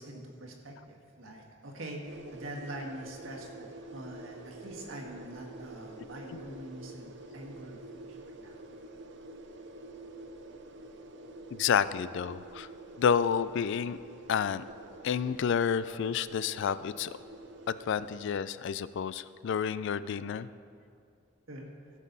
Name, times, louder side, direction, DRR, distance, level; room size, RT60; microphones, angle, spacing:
voice 1, 0.0-8.6 21.5-21.7, right 1 dB, 85° right, 1 dB, 1.6 m, -44 dB
sound 1, 2.0-18.3, right 2 dB, 65° right, 0.7 m, -48 dB
voice 2, 6.0-6.4 11.5-12.7 13.0-14.0 14.3-14.6 15.0-17.2 17.7-20.5, left 7 dB, 65° left, 16 dB, 0.3 m, -30 dB
15.5 x 7.4 x 4.1 m, 2.4 s
head